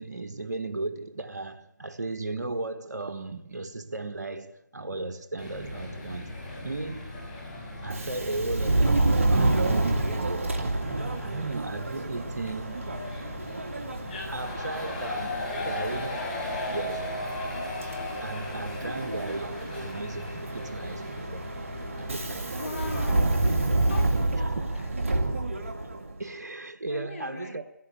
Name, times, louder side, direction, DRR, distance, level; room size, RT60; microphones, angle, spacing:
voice 1, 0.0-7.2 7.8-10.6 11.2-12.8 14.3-16.3 16.7-17.2 18.2-21.6 22.0-22.6 24.5-24.6 26.2-27.6, right 2 dB, 65° right, 1.4 m, -36 dB
sound 1, 5.4-24.2, left 2 dB, 25° left, 6.0 m, -37 dB
Subway metro underground, 7.8-26.2, right 2 dB, 45° right, 2.6 m, -29 dB
voice 2, 22.5-23.4 23.9-24.9 26.9-27.6, left 3 dB, 45° left, 3.5 m, -39 dB
20.5 x 16.5 x 9.8 m
figure-of-eight pair, 160°, 10 cm